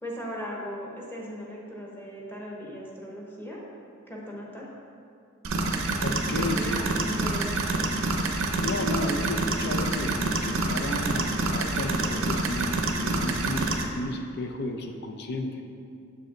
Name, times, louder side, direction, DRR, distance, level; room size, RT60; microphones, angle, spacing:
voice 1, 0.0-3.6 4.1-4.7 6.5-8.0, equal, 10° left, -3 dB, 1.1 m, -38 dB
sound 1, 5.4-13.8, right 2 dB, 75° right, 0.6 m, -27 dB
voice 2, 6.0-6.7 8.5-15.6, left 2 dB, 55° left, 4 dB, 0.5 m, -33 dB
7.0 x 5.4 x 3.8 m, 2.4 s
head